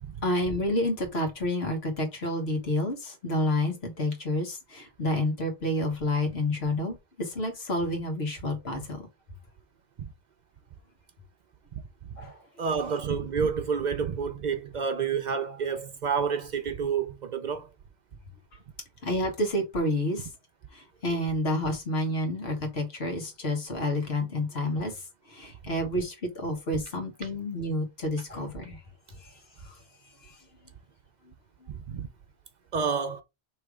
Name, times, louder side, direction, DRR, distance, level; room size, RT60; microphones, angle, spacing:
voice 1, 0.2-9.0 12.2-12.4 19.0-20.3 20.7-28.8 29.2-29.8 30.2-30.4, left 1 dB, 80° left, 1.6 m, -29 dB
voice 2, 12.6-17.7 31.7-32.1 32.7-33.2, right 6 dB, 55° right, 0.6 m, -29 dB
3.3 x 3.1 x 4.7 m
omnidirectional pair, 1.0 m